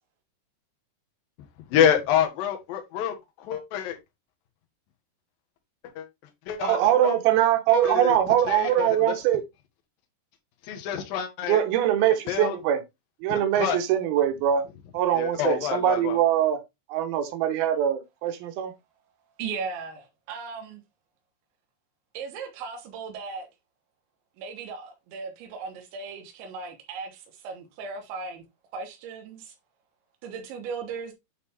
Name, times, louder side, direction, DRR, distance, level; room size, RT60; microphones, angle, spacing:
voice 1, 1.7-4.0 6.0-6.1 6.5-6.8 7.0-7.2 7.7-8.2 8.5-9.1 10.6-11.6 12.3-12.5 13.3-13.8 15.1-16.2, left 9 dB, 65° left, 2.7 m, -27 dB
voice 2, 6.6-9.4 11.5-12.8 13.2-14.6 14.9-16.6 16.9-18.7, right 11 dB, 70° right, 2.7 m, -23 dB
voice 3, 19.4-20.8 22.2-23.5 24.4-28.4 28.7-29.5 30.2-31.1, right 5 dB, 90° right, 3.7 m, -37 dB
9.2 x 4.1 x 3.4 m
omnidirectional pair, 5.1 m